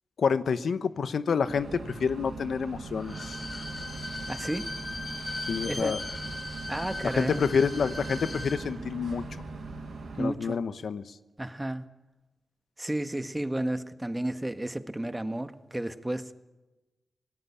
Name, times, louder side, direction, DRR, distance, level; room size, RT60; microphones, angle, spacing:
voice 1, 0.2-3.3 5.5-6.0 7.0-9.2 10.2-11.0, left 6 dB, 85° left, 1.0 m, -28 dB
sound 1, 1.5-10.2, right 3 dB, 85° right, 6.5 m, -41 dB
Bowed string instrument, 3.0-8.6 8.9-9.0, left 1 dB, 50° left, 7.7 m, -38 dB
voice 2, 4.3-4.7 5.6-6.0 6.7-7.4 10.2-10.6 11.4-11.8 12.8-16.2, right 1 dB, 15° right, 1.6 m, -32 dB
27.0 x 19.0 x 8.6 m
cardioid pair, 70°, 0 cm